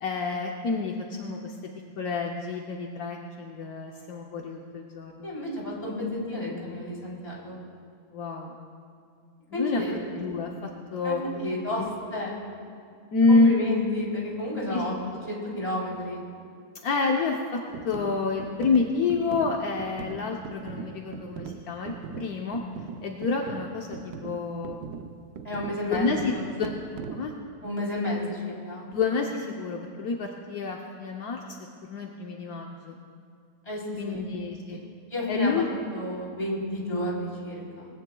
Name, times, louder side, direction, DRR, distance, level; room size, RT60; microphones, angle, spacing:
voice 1, 0.0-1.7 2.0-5.3 8.1-8.6 9.5-9.8 10.2-11.2 11.8-11.9 13.1-13.5 14.7-15.1 16.8-17.6 17.8-22.6 23.0-24.8 25.9-26.3 26.6-26.7 27.1-27.3 28.9-31.6 31.9-33.0 34.0-34.8 35.3-35.7, left 4 dB, 75° left, 0 dB, 1.3 m, -28 dB
voice 2, 5.2-5.9 6.3-7.6 9.5-10.0 11.0-11.8 12.1-12.4 13.3-14.9 15.3-16.2 25.4-26.1 27.6-28.4 28.7-28.8 33.7-34.4 35.1-35.6 35.9-37.9, left 1 dB, 25° left, -5 dB, 3.6 m, -31 dB
sound 1, 17.7-27.4, right 7 dB, 80° right, 1.2 m, -40 dB
20.5 x 16.5 x 2.3 m, 2.2 s
omnidirectional pair, 1.6 m